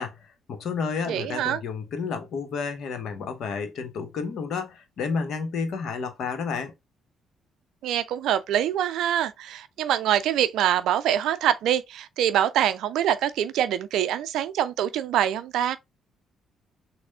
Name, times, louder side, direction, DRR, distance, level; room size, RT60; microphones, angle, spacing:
voice 1, 0.0-6.7, left 5 dB, 55° left, 0.9 m, -31 dB
voice 2, 1.1-1.6 7.8-15.8, right 10 dB, 60° right, 0.4 m, -24 dB
6.3 x 2.1 x 3.5 m
figure-of-eight pair, 45°, 0 cm